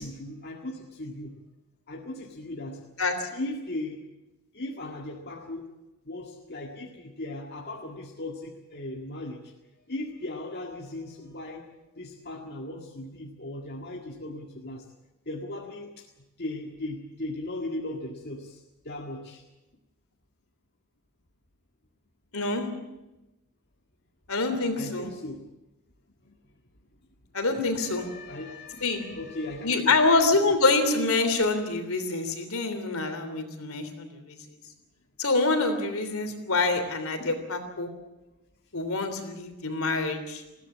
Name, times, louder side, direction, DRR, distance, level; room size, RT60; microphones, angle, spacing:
voice 1, 0.0-1.4 1.9-2.8 3.3-4.0 4.5-5.7 6.1-9.5 9.9-11.7 11.9-14.9 15.3-16.1 16.4-19.4 24.8-25.4 26.3-26.4 27.8-30.0 37.2-37.4, left 1 dB, 45° left, 0 dB, 1.9 m, -37 dB
voice 2, 3.0-3.3 22.3-22.7 24.3-25.1 27.3-28.1 28.8-29.0 29.6-34.4 35.2-37.9 38.7-40.4, left 3 dB, 70° left, 7 dB, 3.3 m, -26 dB
20.5 x 16.0 x 8.6 m, 0.99 s
head